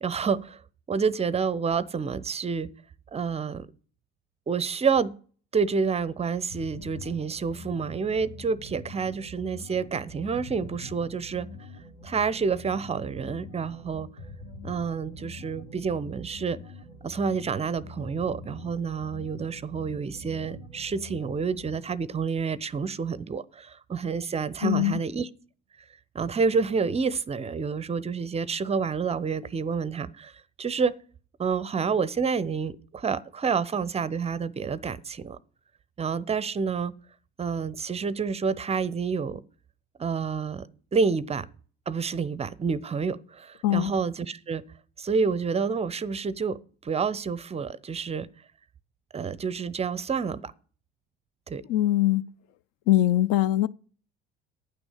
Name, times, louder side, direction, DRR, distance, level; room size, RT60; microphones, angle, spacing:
voice 1, 0.0-0.6 0.9-2.7 3.1-3.7 4.5-5.1 5.5-11.5 12.0-14.1 14.6-16.6 17.0-25.3 26.1-30.3 30.6-30.9 31.4-35.4 36.0-36.9 37.4-39.4 40.0-40.7 40.9-41.5 41.9-44.6 45.0-46.6 46.8-48.3 49.1-50.5 51.5-51.6, right 5 dB, 20° right, 0.5 m, -28 dB
sound 1, 6.5-21.9, left 1 dB, 75° left, 2.6 m, -44 dB
voice 2, 24.6-25.0 43.6-43.9 51.7-52.2 52.9-53.7, left 14 dB, 50° left, 0.4 m, -22 dB
9.5 x 6.1 x 8.1 m
hypercardioid pair, 65°, 30 cm